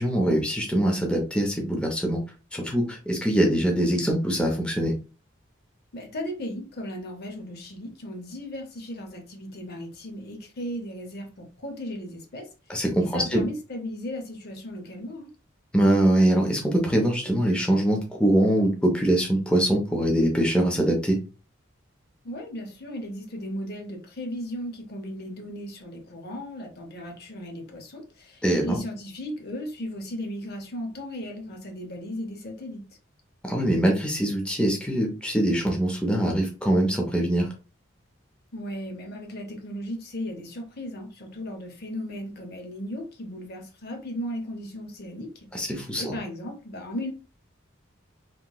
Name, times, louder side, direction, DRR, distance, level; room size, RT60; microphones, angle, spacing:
voice 1, 0.0-2.2 2.5-4.9 12.7-13.5 15.7-21.2 28.4-28.8 33.4-37.5 45.5-46.1, right 1 dB, 5° left, 0.5 m, -23 dB
voice 2, 5.9-12.5 13.0-15.3 22.2-32.8 38.5-45.5 46.0-47.1, equal, 50° left, 0.6 m, -36 dB
2.9 x 2.8 x 2.2 m
head